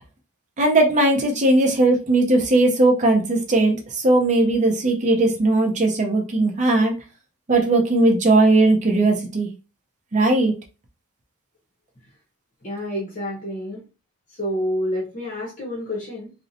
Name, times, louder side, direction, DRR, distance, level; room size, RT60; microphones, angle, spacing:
voice 1, 0.6-6.9 7.5-9.5 10.1-10.5, right 2 dB, 30° right, 0.5 m, -18 dB
voice 2, 12.6-13.8 14.3-16.3, equal, 35° left, 0.7 m, -28 dB
2.6 x 2.0 x 2.7 m
head